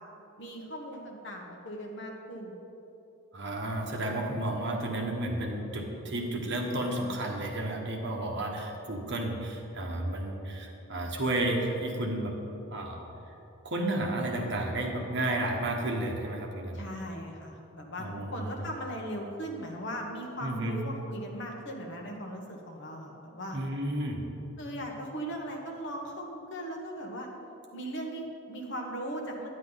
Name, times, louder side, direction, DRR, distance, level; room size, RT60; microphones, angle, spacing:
voice 1, 0.4-2.5 16.7-18.1 18.3-23.6 24.6-27.3 27.7-29.5, equal, 55° left, 1 dB, 1.3 m, -38 dB
voice 2, 3.3-12.4 12.7-13.3 13.6-16.8 18.0-18.6 20.4-20.8 23.5-24.2, right 1 dB, 50° right, 0 dB, 1.3 m, -32 dB
10.5 x 9.8 x 4.0 m, 2.9 s
head